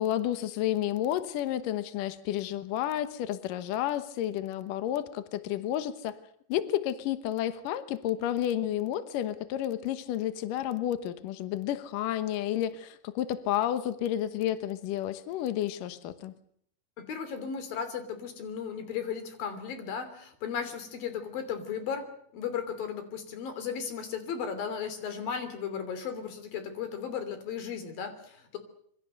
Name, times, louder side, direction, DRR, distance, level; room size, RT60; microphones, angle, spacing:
voice 1, 0.0-6.2 6.5-16.3, left 12 dB, 75° left, 11 dB, 1.9 m, -31 dB
voice 2, 17.0-22.1 22.3-28.6, left 7 dB, 50° left, 9 dB, 4.5 m, -35 dB
26.0 x 24.0 x 6.7 m, 0.66 s
omnidirectional pair, 5.5 m